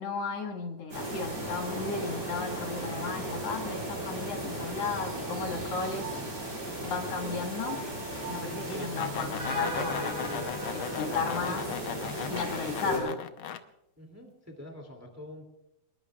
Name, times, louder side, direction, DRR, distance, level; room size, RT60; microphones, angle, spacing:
voice 1, 0.0-6.1 6.8-7.8 8.3-10.4 10.7-11.6 12.3-13.2, left 4 dB, 60° left, 3 dB, 2.5 m, -34 dB
sound 1, 0.9-13.0, right 1 dB, 35° right, 7.9 m, -35 dB
sound 2, 8.7-13.6, left 9 dB, 75° left, 1.2 m, -38 dB
voice 2, 12.6-13.2 14.0-15.5, left 1 dB, 5° right, 2 dB, 2.1 m, -44 dB
25.0 x 21.5 x 2.4 m, 0.89 s
omnidirectional pair, 3.3 m